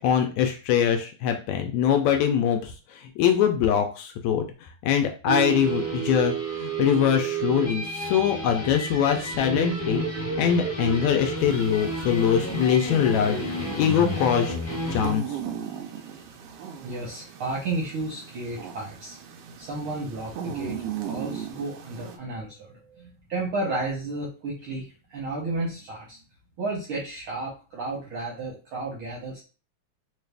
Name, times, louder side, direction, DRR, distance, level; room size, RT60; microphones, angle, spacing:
voice 1, 0.0-4.5 4.8-10.0 10.4-14.6 14.9-15.4, left 8 dB, 80° left, 5 dB, 1.7 m, -23 dB
sound 1, 5.3-15.1, right 3 dB, 10° left, 0.8 m, -30 dB
sound 2, 11.4-22.2, right 8 dB, 85° right, 1.3 m, -38 dB
voice 2, 16.8-19.2 19.6-26.2 26.6-29.4, right 2 dB, 70° right, -3 dB, 1.3 m, -33 dB
4.6 x 2.4 x 3.3 m, 0.35 s
omnidirectional pair, 3.4 m